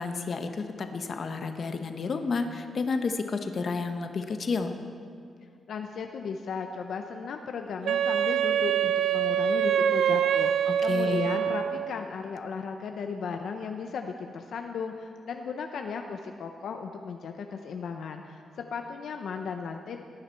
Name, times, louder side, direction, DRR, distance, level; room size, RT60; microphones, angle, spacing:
voice 1, 0.0-4.7 10.7-11.3, left 4 dB, 45° left, 6 dB, 0.9 m, -31 dB
voice 2, 5.7-18.4 18.7-20.0, left 5 dB, 75° left, 4 dB, 0.6 m, -36 dB
Wind instrument woodwind instrument, 7.9-12.0, right 9 dB, 80° right, 0.4 m, -25 dB
18.0 x 9.6 x 4.5 m, 2.3 s
wide cardioid pair, 130°, 0 cm